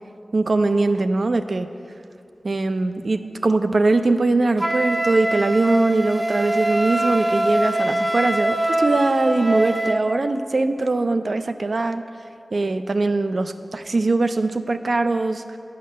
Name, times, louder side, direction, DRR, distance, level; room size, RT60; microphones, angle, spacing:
voice 1, 0.3-1.7 2.4-12.0 12.5-15.6, right 2 dB, 65° right, 10 dB, 0.4 m, -21 dB
Wind instrument woodwind instrument, 4.6-10.0, right 1 dB, 30° right, 0.7 m, -23 dB
9.5 x 5.5 x 7.4 m, 2.6 s
wide cardioid pair, 50°, 0 cm